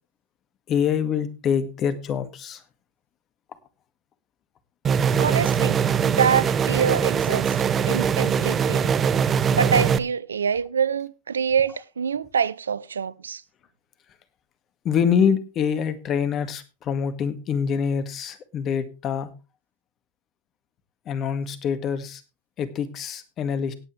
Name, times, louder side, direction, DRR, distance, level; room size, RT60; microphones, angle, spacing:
voice 1, 0.7-2.6 14.8-19.3 21.1-22.2 22.6-23.7, left 7 dB, 35° left, 1.9 m, -25 dB
sound 1, 4.8-10.0, right 7 dB, 25° right, 0.7 m, -22 dB
voice 2, 5.2-7.5 7.9-8.9 9.5-13.4, right 7 dB, 85° right, 0.6 m, -25 dB
17.5 x 8.7 x 3.3 m
hypercardioid pair, 100°, 0 cm